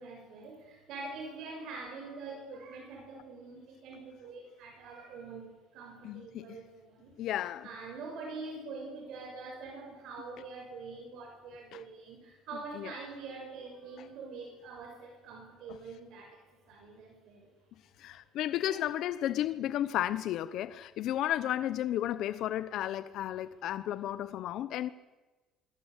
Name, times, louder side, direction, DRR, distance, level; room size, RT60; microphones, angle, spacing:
voice 1, 0.0-7.2 7.6-17.5 18.6-18.8, right 3 dB, 60° right, 3 dB, 6.2 m, -45 dB
voice 2, 6.0-6.6 7.2-7.7 11.7-11.8 12.8-12.9 15.7-15.8 18.0-24.9, left 12 dB, 55° left, 14 dB, 0.9 m, -33 dB
28.0 x 23.5 x 8.3 m, 1.2 s
cardioid pair, 170°, 0 cm